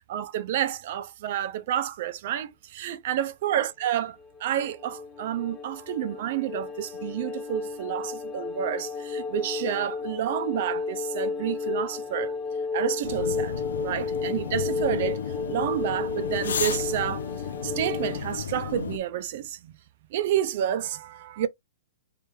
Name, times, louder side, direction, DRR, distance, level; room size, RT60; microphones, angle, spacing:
voice 1, 0.1-12.3 12.7-15.2 15.5-17.2 17.6-19.7 20.1-21.5, right 11 dB, 50° right, 0.6 m, -29 dB
sound 1, 4.1-18.2, left 4 dB, 15° left, 0.5 m, -33 dB
sound 2, 13.0-19.0, left 6 dB, 80° left, 0.5 m, -33 dB
3.3 x 3.2 x 3.4 m
hypercardioid pair, 145°, 0 cm